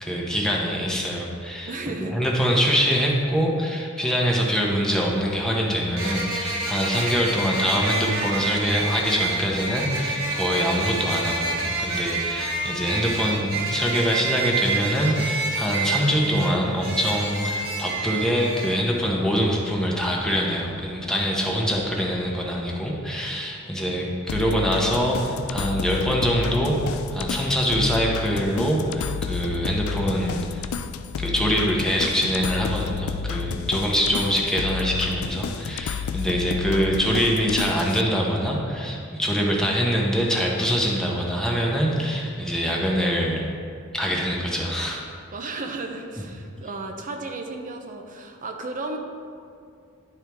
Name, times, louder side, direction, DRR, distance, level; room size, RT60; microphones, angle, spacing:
voice 1, 0.0-30.7 31.2-43.4 43.9-45.0, equal, 5° left, -2 dB, 0.9 m, -24 dB
voice 2, 0.6-1.0 1.7-2.2 33.8-34.2 42.2-42.6 45.3-49.0, right 3 dB, 40° right, 4 dB, 0.6 m, -35 dB
sound 1, 4.3-4.4 6.0-18.8, right 3 dB, 80° right, 1.2 m, -28 dB
sound 2, 24.3-38.0, left 7 dB, 75° left, 0.4 m, -31 dB
10.5 x 4.5 x 3.4 m, 2.4 s
head